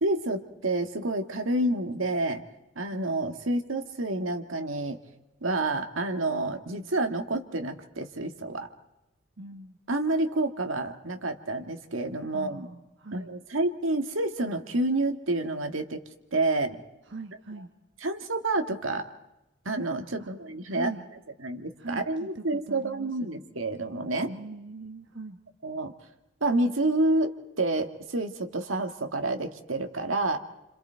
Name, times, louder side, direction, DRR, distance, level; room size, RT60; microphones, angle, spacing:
voice 1, 0.0-2.4 2.8-5.0 5.4-8.7 9.9-12.6 13.1-16.0 16.3-16.8 18.0-19.0 19.7-20.9 21.4-24.3 25.6-25.9 26.4-30.4, right 2 dB, 85° right, 6 dB, 1.8 m, -29 dB
voice 2, 2.9-3.3 9.4-9.8 12.3-13.3 17.1-17.7 20.2-20.3 20.7-21.1 21.8-23.1 24.3-25.4, right 2 dB, 65° right, 5 dB, 1.3 m, -41 dB
30.0 x 26.5 x 4.6 m, 0.93 s
head